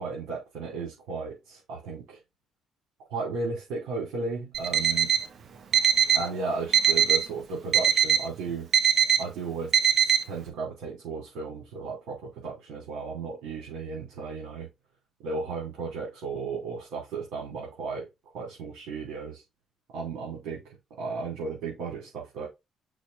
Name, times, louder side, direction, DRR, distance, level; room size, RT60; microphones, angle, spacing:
voice 1, 0.0-2.2 3.1-5.1 6.1-8.7 9.2-14.7 15.2-18.1 18.3-19.4 19.9-20.6 21.0-22.5, right 4 dB, 75° right, 3.4 m, -34 dB
Alarm, 4.5-5.2 5.7-6.3 6.7-7.3 7.7-8.3 8.7-9.2 9.7-10.2, right 8 dB, 55° right, 1.3 m, -21 dB
6.2 x 3.0 x 5.6 m
supercardioid pair, 65°, 0 cm